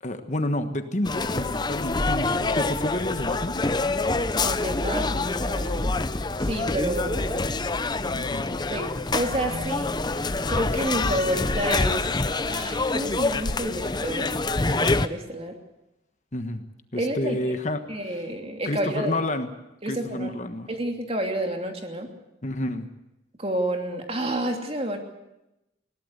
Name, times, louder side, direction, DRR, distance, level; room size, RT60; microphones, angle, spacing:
voice 1, 0.0-3.7 8.1-8.4 16.3-16.6 16.9-17.9 18.6-19.5 19.9-20.7 22.4-22.9, left 1 dB, 40° left, 8 dB, 1.4 m, -29 dB
sound 1, 1.1-15.1, left 3 dB, 25° left, 0.7 m, -26 dB
voice 2, 4.3-5.9 6.4-7.6 8.7-9.9 10.5-14.3 14.7-15.5 17.0-17.4 17.9-19.2 19.8-20.3 20.7-22.1 23.4-25.0, right 1 dB, 30° right, 3 dB, 2.9 m, -30 dB
20.5 x 18.0 x 8.1 m, 0.91 s
head